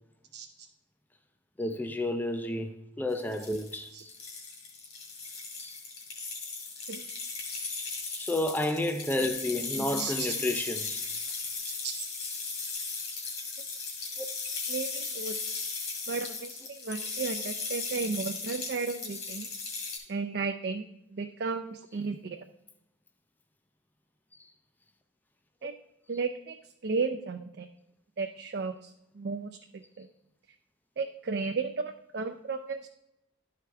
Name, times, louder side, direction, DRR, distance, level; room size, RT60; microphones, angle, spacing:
voice 1, 1.6-3.9 5.6-5.8 8.2-11.0 13.1-13.3 14.2-14.3, left 1 dB, 10° left, 0.4 m, -31 dB
sound 1, 3.2-20.0, left 4 dB, 50° left, 2.0 m, -37 dB
voice 2, 9.7-10.7 11.8-11.9 14.7-15.3 16.1-19.5 20.1-22.4 25.6-25.7 26.1-26.5 26.8-27.7 28.2-28.9 29.2-30.1 31.0-32.9, right 4 dB, 55° right, 0.4 m, -34 dB
11.5 x 4.7 x 3.4 m
head